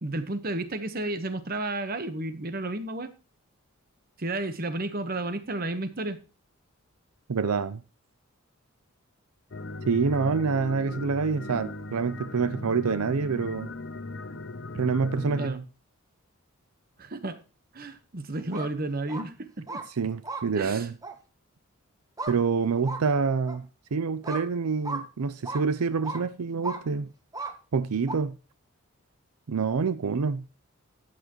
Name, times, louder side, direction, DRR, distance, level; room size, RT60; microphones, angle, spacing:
voice 1, 0.0-3.1 4.2-6.2 15.4-15.6 17.0-17.4 17.7-19.8 20.6-20.9, right 2 dB, 40° right, 1.1 m, -32 dB
voice 2, 7.3-7.8 9.9-13.7 14.7-15.6 20.0-20.9 22.3-23.7 23.9-27.1 27.7-28.4 29.5-30.4, right 5 dB, 85° right, 0.5 m, -27 dB
sound 1, 9.5-15.5, left 2 dB, 55° left, 0.8 m, -38 dB
sound 2, 18.4-18.7 19.1-19.2 19.7-19.8 20.2-20.4 21.0-21.1 22.2-22.4 22.8-23.0 23.5-23.6 24.2-24.4 24.8-25.0 25.4-25.6 26.0-26.2 26.6-26.8 27.3-27.5 28.1-28.2, right 2 dB, 15° right, 1.0 m, -35 dB
13.0 x 8.8 x 3.0 m
head